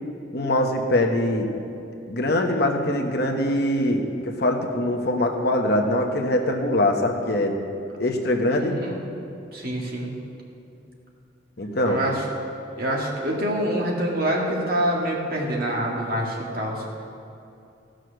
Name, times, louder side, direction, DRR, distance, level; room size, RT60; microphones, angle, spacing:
voice 1, 0.3-1.5 2.1-7.6 8.0-8.8 11.6-12.0, left 1 dB, 55° left, 2 dB, 1.1 m, -23 dB
voice 2, 8.5-8.9 9.5-10.1 11.9-12.2 12.8-17.0, right 1 dB, 50° right, -2 dB, 2.0 m, -26 dB
15.5 x 6.4 x 6.4 m, 2.7 s
head